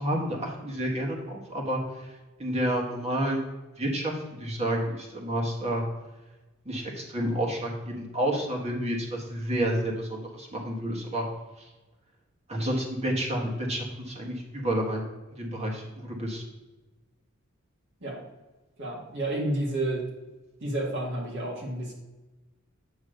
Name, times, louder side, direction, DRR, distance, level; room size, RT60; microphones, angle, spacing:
voice 1, 0.0-1.8 2.4-3.4 3.8-5.8 6.6-11.2 12.5-15.1 15.4-16.4, right 1 dB, 30° right, -1 dB, 1.5 m, -30 dB
voice 2, 18.8-20.0 20.6-21.9, right 1 dB, 60° right, -2 dB, 1.8 m, -30 dB
8.4 x 3.2 x 6.4 m, 1.1 s
head